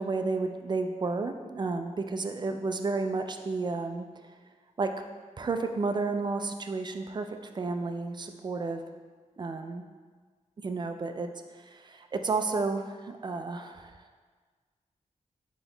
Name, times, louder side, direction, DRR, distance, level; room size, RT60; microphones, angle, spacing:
voice 1, 0.0-4.1 4.8-4.9 5.4-8.8 9.4-9.8 10.6-14.0, right 3 dB, 35° right, 6 dB, 0.4 m, -32 dB
3.9 x 3.0 x 3.8 m, 1.5 s
cardioid pair, 65°, 13 cm